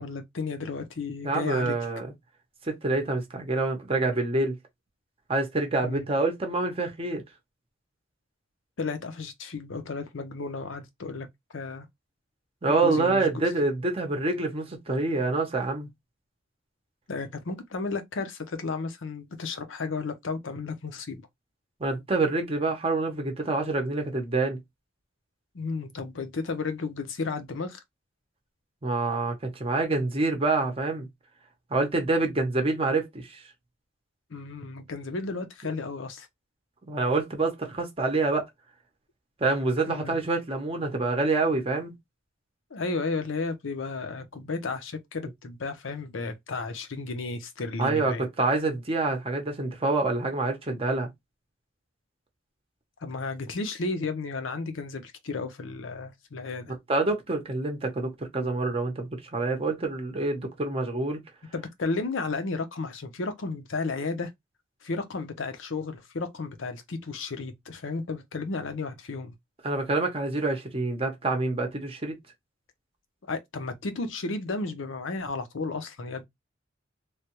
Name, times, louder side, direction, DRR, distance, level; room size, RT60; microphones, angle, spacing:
voice 1, 0.0-1.8 5.8-6.1 8.8-11.3 11.5-11.9 12.7-13.4 17.1-21.3 25.5-27.8 34.3-36.3 39.9-40.2 42.7-48.2 53.0-56.7 61.5-64.3 64.8-69.3 73.3-76.2, left 3 dB, 75° left, 0.7 m, -33 dB
voice 2, 1.2-2.1 2.7-4.5 5.3-7.2 12.6-15.9 21.8-24.6 28.8-31.1 31.7-33.4 36.9-38.5 39.4-41.9 47.8-51.1 56.7-61.2 69.6-72.2, right 3 dB, 30° right, 0.7 m, -27 dB
3.2 x 2.3 x 2.9 m
head